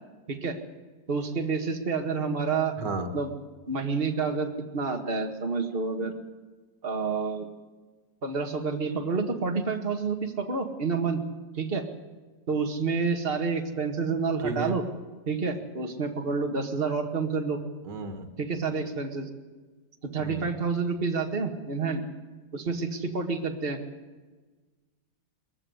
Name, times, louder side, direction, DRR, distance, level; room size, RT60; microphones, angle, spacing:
voice 1, 0.3-0.6 1.1-2.7 3.1-3.3 3.7-6.1 6.8-7.5 8.2-11.2 11.5-11.8 12.5-14.8 15.3-17.6 18.4-19.3 20.1-22.0 22.5-23.8, right 4 dB, 35° right, 4 dB, 2.1 m, -29 dB
voice 2, 2.8-3.1 14.4-14.8 17.9-18.3 20.2-20.5, right 3 dB, 80° right, 8 dB, 2.3 m, -33 dB
21.5 x 14.5 x 9.7 m, 1.3 s
omnidirectional pair, 1.8 m